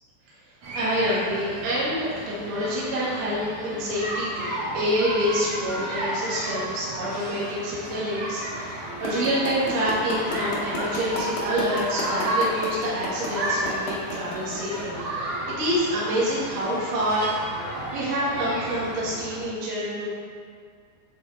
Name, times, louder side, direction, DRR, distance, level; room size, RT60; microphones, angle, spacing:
sound 1, 0.6-19.4, right 1 dB, 80° right, 1.4 m, -32 dB
voice 1, 0.7-15.3 15.6-17.3 17.9-20.1, equal, 60° right, -8 dB, 1.4 m, -27 dB
sound 2, 9.0-14.8, left 3 dB, 75° left, 2.1 m, -31 dB
8.5 x 3.6 x 3.4 m, 2.1 s
omnidirectional pair, 5.2 m